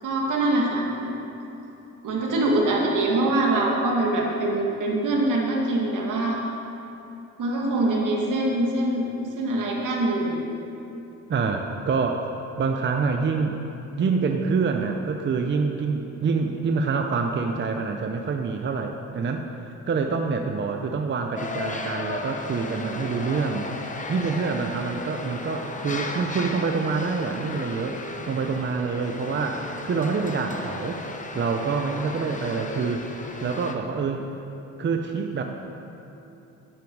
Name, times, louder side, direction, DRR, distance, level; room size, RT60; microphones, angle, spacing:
voice 1, 0.0-1.1 2.0-6.4 7.4-10.4, right 2 dB, 70° right, -1 dB, 2.3 m, -24 dB
voice 2, 11.3-12.3 12.6-13.6 14.0-19.5 19.9-23.6 24.1-28.0 28.3-31.0 31.3-33.0 33.4-34.3 34.8-35.4, right 5 dB, 35° right, 4 dB, 0.6 m, -26 dB
sound 1, 21.4-33.7, left 3 dB, 25° left, 0.8 m, -35 dB
12.0 x 10.5 x 4.7 m, 2.9 s
cardioid pair, 125°, 32 cm